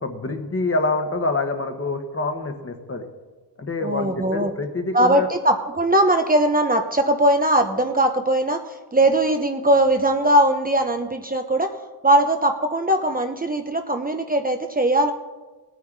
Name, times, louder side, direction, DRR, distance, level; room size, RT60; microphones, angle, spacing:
voice 1, 0.0-3.1 3.6-5.3, left 2 dB, 35° left, 5 dB, 1.5 m, -26 dB
voice 2, 3.8-4.5 4.9-11.7 12.0-15.1, right 1 dB, 20° right, 5 dB, 0.8 m, -20 dB
18.0 x 9.5 x 4.0 m, 1.2 s
cardioid pair, 85°, 39 cm